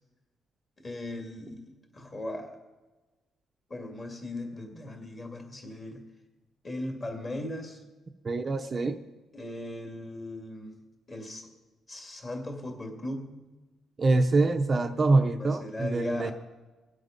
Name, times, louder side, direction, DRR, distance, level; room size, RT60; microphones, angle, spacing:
voice 1, 0.8-2.5 3.7-6.0 6.6-7.8 9.3-10.7 11.1-11.5 11.9-13.3 15.4-16.3, left 1 dB, 30° left, 3 dB, 2.4 m, -38 dB
voice 2, 8.2-9.0 14.0-16.3, right 3 dB, 30° right, 6 dB, 0.6 m, -25 dB
22.0 x 8.0 x 5.2 m, 1.2 s
cardioid pair, 130°, 0 cm